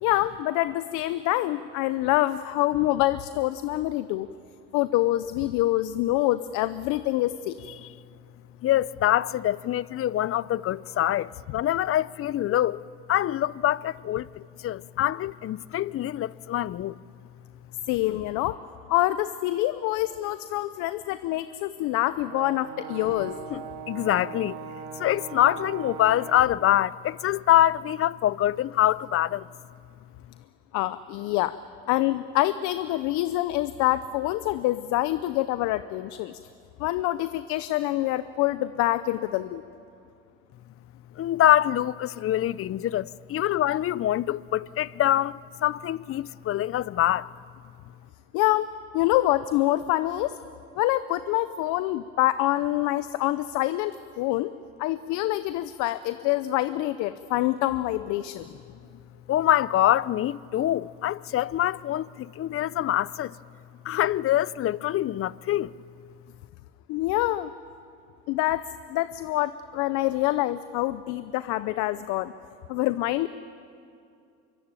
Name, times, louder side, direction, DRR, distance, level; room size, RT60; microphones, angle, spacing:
voice 1, 0.0-4.3 4.7-7.6 17.9-18.6 18.9-23.4 30.7-31.5 31.9-36.4 36.8-39.6 48.3-50.4 50.8-54.5 54.8-58.5 66.9-67.5 68.3-72.3 72.7-73.3, left 16 dB, 75° left, 0.8 m, -26 dB
voice 2, 8.6-12.8 13.1-17.0 23.5-24.6 24.9-29.5 41.2-47.3 58.5-58.6 59.3-63.4 63.8-65.7, left 12 dB, 50° left, 0.7 m, -25 dB
Brass instrument, 22.3-26.7, right 7 dB, 65° right, 2.4 m, -39 dB
25.5 x 23.5 x 9.0 m
supercardioid pair, 75°, 29 cm